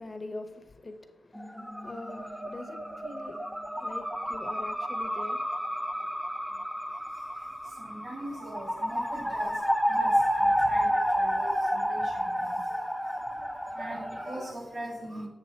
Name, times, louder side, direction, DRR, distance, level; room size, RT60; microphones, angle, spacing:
voice 1, 0.0-6.7, left 2 dB, 35° left, 0.9 m, -44 dB
sound 1, 1.3-14.5, equal, 5° right, 0.8 m, -30 dB
voice 2, 6.8-15.3, right 1 dB, 60° right, 3.4 m, -42 dB
8.5 x 6.4 x 4.4 m
cardioid pair, 75°, 0 cm